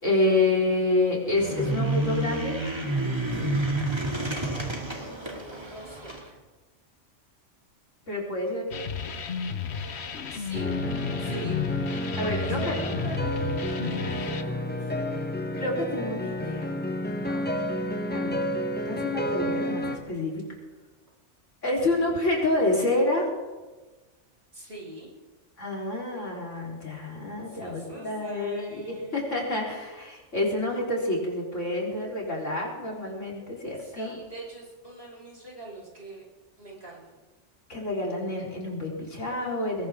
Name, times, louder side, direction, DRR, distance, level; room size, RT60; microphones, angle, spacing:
voice 1, 0.0-2.6 8.1-8.8 12.2-12.8 15.6-16.7 18.1-18.4 18.8-20.4 21.6-23.3 25.6-34.2 37.7-39.9, left 2 dB, 85° left, -3 dB, 4.5 m, -28 dB
sound 1, 1.2-6.2, right 1 dB, 20° right, 2.4 m, -29 dB
voice 2, 4.9-6.4 10.3-10.7 11.2-11.6 12.2-14.9 17.2-17.6 24.5-25.1 27.5-29.2 33.7-36.3 36.6-37.2, right 2 dB, 60° right, -4 dB, 6.2 m, -43 dB
sound 2, 8.7-14.4, left 7 dB, 65° left, 1.2 m, -33 dB
sound 3, 10.5-20.0, equal, 10° left, 1.2 m, -30 dB
20.5 x 19.0 x 3.7 m, 1.3 s
omnidirectional pair, 1.2 m